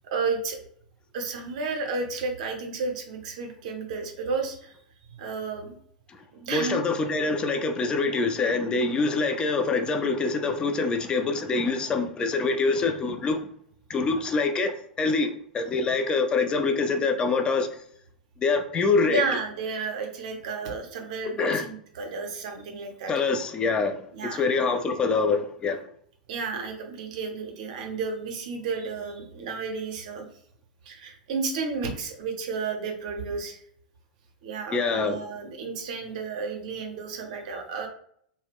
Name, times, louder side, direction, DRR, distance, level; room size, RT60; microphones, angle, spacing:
voice 1, 0.1-0.6 1.1-4.7 5.1-5.7 6.3-6.8 19.1-23.1 24.1-24.4 26.3-30.2 30.9-33.6 34.4-37.9, right 4 dB, 55° right, 0.6 m, -32 dB
voice 2, 6.5-13.4 13.9-15.3 15.5-17.7 18.4-19.2 21.4-21.6 23.1-24.0 24.3-25.8 34.7-35.2, left 4 dB, 20° left, 0.3 m, -25 dB
2.2 x 2.1 x 3.5 m
figure-of-eight pair, 90°, 4 cm